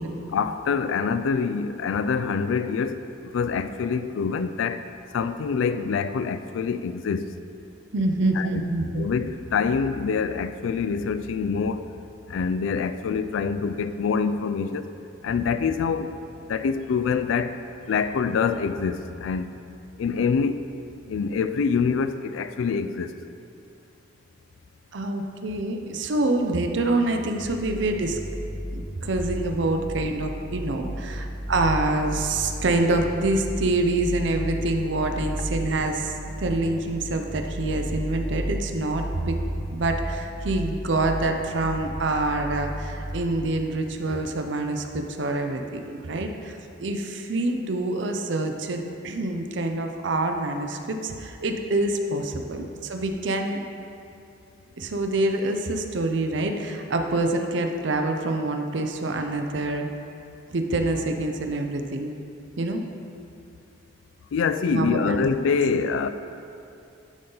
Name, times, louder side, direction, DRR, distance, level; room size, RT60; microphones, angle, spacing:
voice 1, 0.3-7.3 8.4-8.6 8.9-11.9 12.3-14.9 15.2-16.2 16.5-17.6 17.9-19.5 20.0-20.6 21.1-23.1 52.6-52.7 64.3-66.1, left 5 dB, 80° left, 11 dB, 0.3 m, -25 dB
voice 2, 7.9-9.1 24.9-28.2 28.7-39.4 39.7-53.6 54.8-59.9 60.5-62.2 62.6-62.8 64.6-65.3, right 2 dB, 65° right, 5 dB, 0.6 m, -26 dB
sound 1, 27.4-43.5, equal, 5° left, 0.8 m, -34 dB
11.0 x 3.9 x 3.9 m, 2.6 s
head